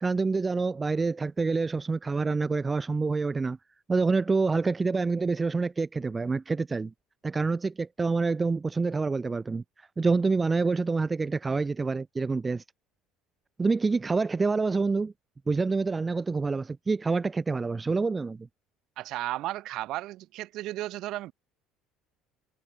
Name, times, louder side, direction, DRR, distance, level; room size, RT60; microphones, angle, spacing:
voice 1, 0.0-3.6 3.9-6.9 7.2-9.6 10.0-12.6 13.6-15.1 15.5-18.5, right 4 dB, 15° right, 0.4 m, -27 dB
voice 2, 19.0-21.3, right 16 dB, 50° right, 0.9 m, -34 dB
cardioid pair, 160°, 0 cm